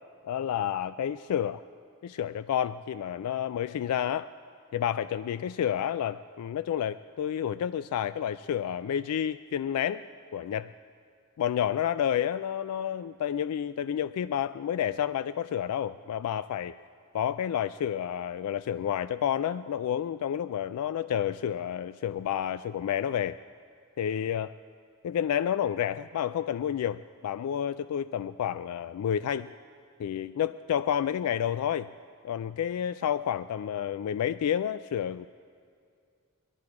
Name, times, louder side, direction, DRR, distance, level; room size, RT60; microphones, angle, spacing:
voice 1, 0.2-1.6 2.0-4.3 4.7-10.0 10.3-10.7 11.4-16.8 17.1-23.4 24.0-24.5 25.0-29.5 30.0-31.9 32.2-35.3, left 9 dB, 90° left, 13 dB, 0.3 m, -30 dB
20.5 x 12.0 x 4.8 m, 2.3 s
head